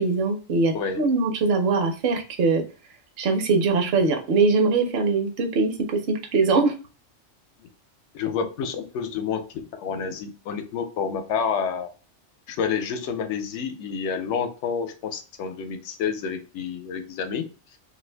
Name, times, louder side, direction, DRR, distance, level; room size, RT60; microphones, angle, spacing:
voice 1, 0.0-2.6 3.2-6.7, right 3 dB, 60° right, 0.8 m, -22 dB
voice 2, 8.1-11.9 12.5-17.5, left 6 dB, 75° left, 0.9 m, -29 dB
2.6 x 2.4 x 3.2 m
omnidirectional pair, 1.2 m